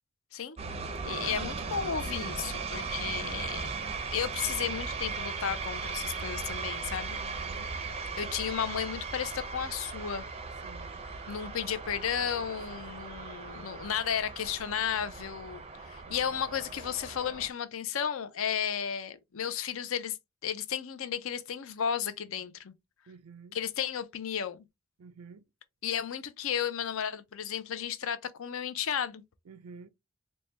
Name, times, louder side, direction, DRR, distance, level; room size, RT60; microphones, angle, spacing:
sound 1, 0.6-17.5, right 4 dB, 30° right, 0.4 m, -38 dB
voice 1, 1.0-3.7 4.1-7.2 8.2-10.2 11.3-20.2 20.4-22.7 23.5-24.6 25.8-29.2, left 8 dB, 65° left, 0.5 m, -33 dB
voice 2, 7.2-7.7 10.6-11.0 16.1-16.4 23.1-23.6 25.0-25.5 29.5-29.9, right 5 dB, 90° right, 0.5 m, -50 dB
4.2 x 2.2 x 3.2 m
head